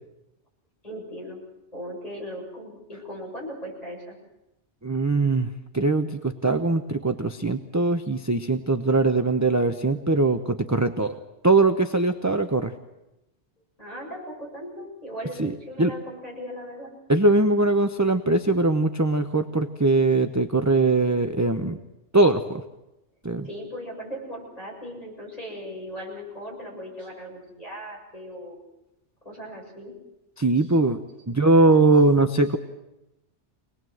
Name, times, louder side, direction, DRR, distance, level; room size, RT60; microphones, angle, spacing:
voice 1, 0.8-1.4 1.7-4.2 13.8-16.9 23.4-28.6 29.2-29.9, equal, 35° left, -2 dB, 7.4 m, -38 dB
voice 2, 4.8-5.5 5.7-11.1 11.4-12.7 15.4-15.9 17.1-21.8 22.1-22.6 23.2-23.5 30.4-32.6, right 2 dB, 15° right, 7 dB, 0.7 m, -21 dB
24.5 x 19.5 x 7.9 m, 0.93 s
omnidirectional pair, 1.2 m